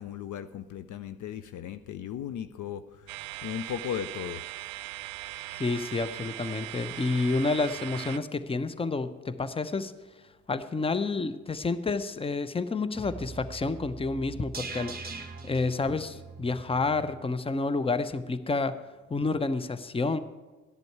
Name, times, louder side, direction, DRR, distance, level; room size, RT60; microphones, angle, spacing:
voice 1, 0.0-3.1 3.4-4.4, left 9 dB, 50° left, 12 dB, 0.6 m, -36 dB
sound 1, 3.1-8.2, right 17 dB, 75° right, 0.6 m, -39 dB
voice 2, 5.5-9.9 10.5-18.8 19.1-20.2, left 3 dB, 15° left, 13 dB, 0.7 m, -29 dB
sound 2, 13.0-17.2 17.5-17.6, right 4 dB, 25° right, 1.3 m, -42 dB
13.5 x 10.5 x 4.7 m, 1.3 s
hypercardioid pair, 45°, 40 cm